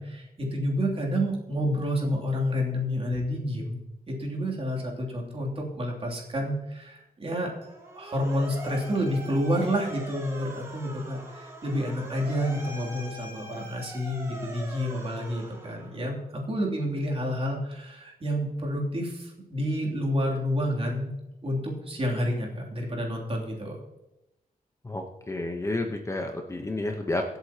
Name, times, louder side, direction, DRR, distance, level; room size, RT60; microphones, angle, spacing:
voice 1, 0.0-3.8 4.1-21.1 21.4-23.8, equal, 40° right, -2 dB, 2.9 m, -29 dB
Motor vehicle (road) / Siren, 7.6-16.2, right 1 dB, 20° right, 2.6 m, -42 dB
voice 2, 24.8-27.2, left 2 dB, 20° left, 3 dB, 1.0 m, -30 dB
23.0 x 8.1 x 2.9 m, 0.96 s
wide cardioid pair, 140°, 15 cm